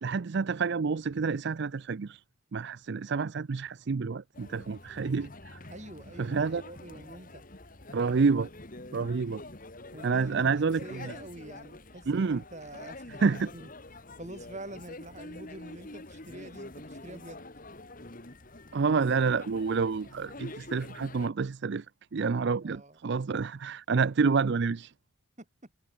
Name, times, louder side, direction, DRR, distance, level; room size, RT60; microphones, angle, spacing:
voice 1, 0.0-2.2 2.5-5.6 6.2-6.6 7.9-8.5 8.9-9.4 10.0-11.1 12.1-12.4 13.2-13.5 18.7-21.9 22.1-24.9, right 5 dB, 55° right, 0.5 m, -28 dB
sound 1, 4.3-21.3, left 2 dB, 40° left, 2.2 m, -46 dB
voice 2, 5.7-7.5 9.9-13.2 13.5-13.7 14.2-17.4 22.6-23.0 25.4-25.5, right 1 dB, 35° right, 2.3 m, -46 dB
head